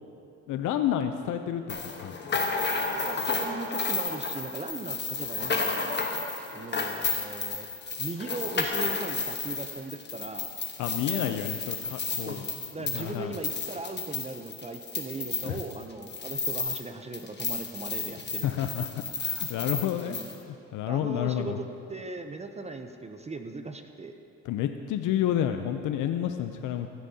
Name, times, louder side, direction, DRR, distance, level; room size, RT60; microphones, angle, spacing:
voice 1, 0.5-2.4 10.8-12.5 12.8-13.3 15.4-15.6 18.4-20.2 20.7-21.6 24.5-26.9, left 10 dB, 80° left, 7 dB, 0.5 m, -30 dB
sound 1, 1.7-16.9 17.1-20.4, left 4 dB, 35° left, 1.2 m, -32 dB
voice 2, 3.1-6.0 6.5-7.7 8.0-10.5 11.1-11.5 12.3-12.4 12.7-18.8 20.0-20.2 20.9-24.2, right 3 dB, 20° right, 6 dB, 0.6 m, -39 dB
16.5 x 11.0 x 2.8 m, 2.6 s
cardioid pair, 90°, 30 cm